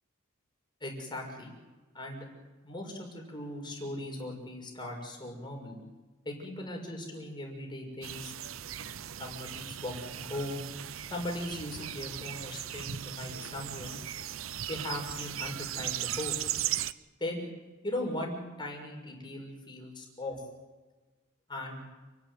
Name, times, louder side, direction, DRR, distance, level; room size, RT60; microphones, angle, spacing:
voice 1, 0.8-1.5 1.9-2.3 2.6-5.8 6.2-8.3 9.2-10.6 11.1-13.9 14.7-16.5 17.2-17.4 17.8-20.4 21.5-21.8, left 1 dB, 25° left, 0 dB, 6.2 m, -38 dB
sound 1, 8.0-16.9, right 11 dB, 70° right, 0.7 m, -37 dB
29.5 x 12.0 x 9.9 m, 1.2 s
head